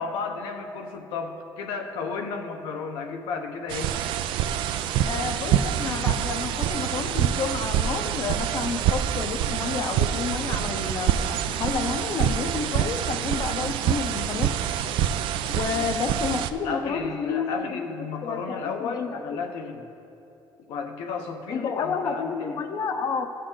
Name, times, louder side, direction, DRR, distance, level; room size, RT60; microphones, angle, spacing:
voice 1, 0.0-4.0 15.7-15.8 16.6-19.9 20.7-22.6, left 5 dB, 85° left, 4 dB, 0.8 m, -33 dB
sound 1, 3.7-16.5, right 10 dB, 75° right, 0.4 m, -26 dB
voice 2, 5.0-14.5 15.5-19.4 21.5-23.3, left 5 dB, 45° left, 6 dB, 0.6 m, -30 dB
14.0 x 6.7 x 3.9 m, 2.7 s
cardioid pair, 120°, 9 cm